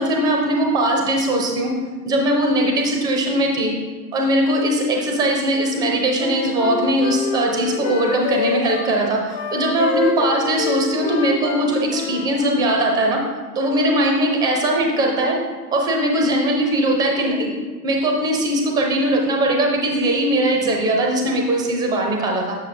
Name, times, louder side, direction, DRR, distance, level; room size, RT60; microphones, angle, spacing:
voice 1, 0.0-1.7 2.0-3.7 4.1-13.2 13.5-15.4 15.7-17.5 17.8-22.6, right 1 dB, 10° right, 1 dB, 0.4 m, -20 dB
Wind instrument woodwind instrument, 5.9-8.9 9.3-12.7, left 6 dB, 45° left, 0.5 m, -27 dB
6.8 x 6.4 x 2.6 m, 1.4 s
figure-of-eight pair, 100°, 50 cm